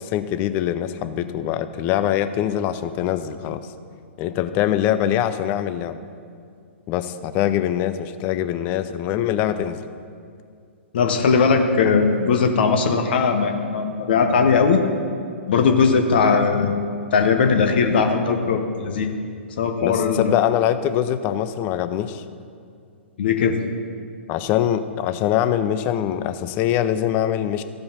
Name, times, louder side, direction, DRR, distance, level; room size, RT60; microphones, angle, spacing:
voice 1, 0.0-3.6 4.2-6.0 6.9-9.8 19.8-22.2 24.3-27.6, left 11 dB, 30° left, 11 dB, 0.4 m, -23 dB
voice 2, 10.9-14.8 15.5-16.8 17.1-19.1 19.6-20.4 23.2-23.6, left 5 dB, 50° left, 5 dB, 0.9 m, -19 dB
14.0 x 5.1 x 5.8 m, 2.3 s
figure-of-eight pair, 115°, 7 cm